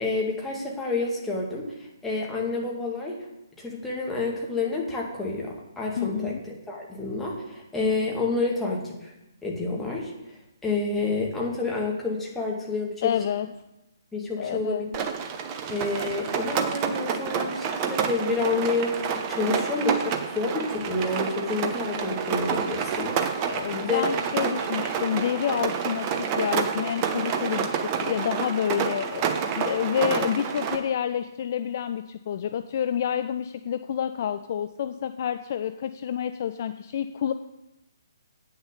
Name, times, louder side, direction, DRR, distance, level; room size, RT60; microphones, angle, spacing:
voice 1, 0.0-3.2 3.6-9.1 9.4-10.1 10.6-13.1 14.1-14.9 15.7-19.0 19.3-23.1 23.7-24.0, left 3 dB, 5° left, -3 dB, 2.0 m, -29 dB
voice 2, 6.0-6.4 13.0-13.5 14.4-14.8 23.5-29.3 29.6-37.3, left 9 dB, 40° left, 10 dB, 0.4 m, -28 dB
Rain, 14.9-30.8, right 7 dB, 25° right, 0.9 m, -29 dB
8.9 x 6.6 x 6.7 m, 0.94 s
figure-of-eight pair, 135°, 2 cm